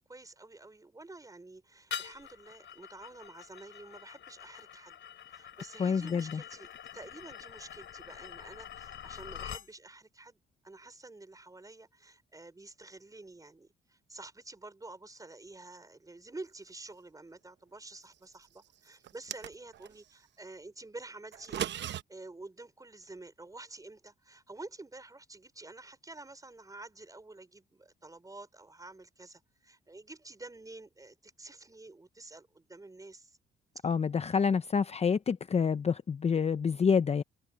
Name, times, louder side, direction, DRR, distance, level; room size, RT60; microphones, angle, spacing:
voice 1, 0.0-5.0 5.3-6.7 6.9-21.7 22.1-33.4 33.8-33.9 34.2-34.4, right 2 dB, 15° right, 5.4 m, -49 dB
sound 1, 1.9-9.7, left 8 dB, 70° left, 3.5 m, -45 dB
voice 2, 5.8-6.4 33.8-37.2, left 6 dB, 30° left, 0.7 m, -28 dB
sound 2, 19.0-19.9 21.3-22.0, right 10 dB, 65° right, 0.9 m, -37 dB
cardioid pair, 90°, 20 cm